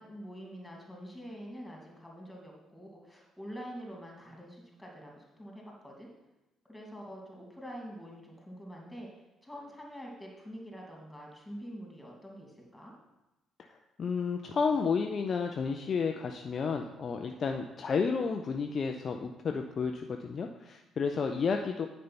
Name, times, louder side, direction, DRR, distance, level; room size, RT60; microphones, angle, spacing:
voice 1, 0.0-6.1 6.7-12.9, equal, 10° left, -1 dB, 2.6 m, -46 dB
voice 2, 13.7-21.9, left 5 dB, 40° left, 4 dB, 0.5 m, -31 dB
9.2 x 5.4 x 4.3 m, 0.99 s
figure-of-eight pair, 45°, 0 cm